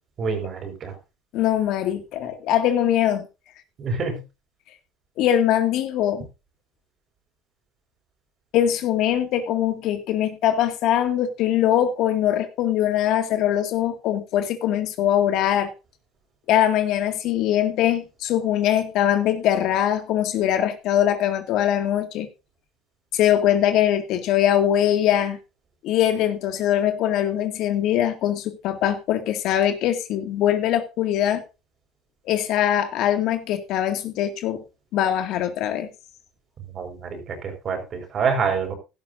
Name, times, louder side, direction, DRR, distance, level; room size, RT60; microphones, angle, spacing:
voice 1, 0.2-0.9 3.8-4.2 36.6-38.7, right 5 dB, 40° right, 4.8 m, -27 dB
voice 2, 1.3-3.3 5.2-6.2 8.5-15.7 16.5-22.3 23.1-25.4 25.8-31.4 32.3-34.6 34.9-35.9, left 11 dB, 60° left, 2.0 m, -22 dB
15.5 x 12.0 x 2.6 m
cardioid pair, 125°, 0 cm